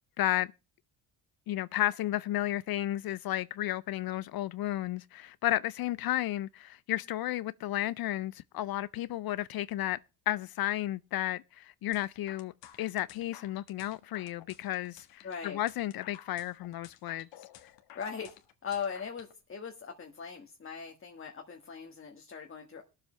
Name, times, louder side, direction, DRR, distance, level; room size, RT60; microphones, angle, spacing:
voice 1, 0.2-0.5 1.5-10.0 10.3-12.5 12.8-17.3, left 14 dB, 55° left, 0.5 m, -33 dB
sound 1, 11.9-19.3, left 11 dB, 75° left, 1.6 m, -53 dB
voice 2, 15.2-15.6 17.9-18.4 18.6-22.8, left 6 dB, 30° left, 1.6 m, -40 dB
21.0 x 7.6 x 3.2 m
cardioid pair, 95°, 44 cm